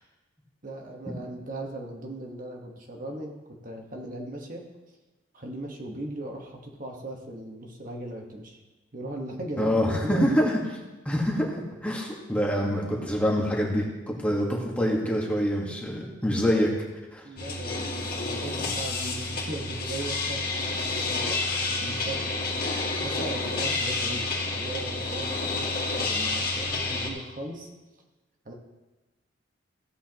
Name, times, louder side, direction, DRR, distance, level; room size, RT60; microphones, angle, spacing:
voice 1, 0.6-4.6 5.3-8.6 8.9-10.6 17.2-20.5 21.0-21.4 21.8-22.3 23.0-27.7 28.4-28.5, right 1 dB, 45° right, 1 dB, 1.3 m, -38 dB
voice 2, 9.6-10.6 11.0-11.5 11.8-16.7 17.1-17.2, equal, 5° left, -2 dB, 1.5 m, -25 dB
sound 1, 17.4-27.1, left 3 dB, 50° left, 2.2 m, -29 dB
16.0 x 8.4 x 3.0 m, 1.2 s
head